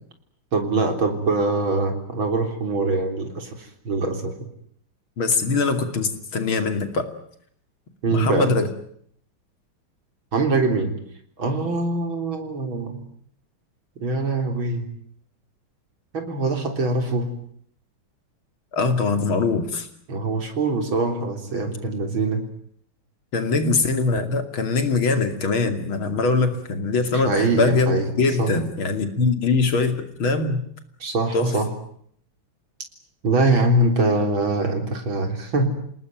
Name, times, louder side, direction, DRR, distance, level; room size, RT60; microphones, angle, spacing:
voice 1, 0.5-4.3 8.0-8.5 10.3-10.9 11.4-13.0 14.0-14.8 16.1-17.3 20.1-22.5 23.6-23.7 27.1-28.1 28.4-28.5 31.0-31.7 33.2-35.7, right 3 dB, 70° right, 5 dB, 4.4 m, -23 dB
voice 2, 5.2-7.1 8.1-8.7 18.7-19.9 23.3-30.6 31.3-31.5, left 3 dB, 75° left, 8 dB, 3.4 m, -22 dB
28.5 x 19.0 x 9.1 m, 0.67 s
omnidirectional pair, 2.3 m